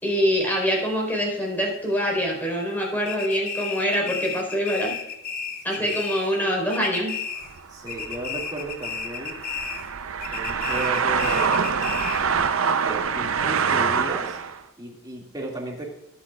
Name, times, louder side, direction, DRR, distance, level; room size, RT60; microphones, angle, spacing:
voice 1, 0.0-4.9 5.6-7.1, equal, 10° left, -2 dB, 4.3 m, -24 dB
sound 1, 3.1-6.4 6.7-7.6 7.9-9.9 10.2-12.3, left 6 dB, 45° left, 1.1 m, -33 dB
sound 2, 7.4-14.6, right 6 dB, 80° right, 0.6 m, -25 dB
voice 2, 7.7-9.4 10.3-12.1 12.8-14.4 14.8-15.9, right 1 dB, 20° right, -2 dB, 2.2 m, -34 dB
21.5 x 8.5 x 2.4 m, 0.90 s
head